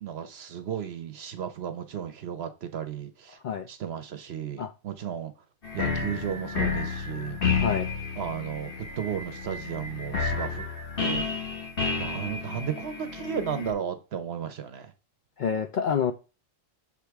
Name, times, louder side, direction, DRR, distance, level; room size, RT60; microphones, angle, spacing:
voice 1, 0.0-3.4 3.7-5.3 5.7-7.4 8.2-10.7 11.0-11.3 12.0-14.9, right 8 dB, 60° right, 0.8 m, -34 dB
sound 1, 5.6-13.7, left 5 dB, 45° left, 1.5 m, -31 dB
voice 2, 7.5-7.9 15.4-16.1, left 7 dB, 65° left, 0.4 m, -27 dB
6.7 x 4.8 x 3.5 m
omnidirectional pair, 1.3 m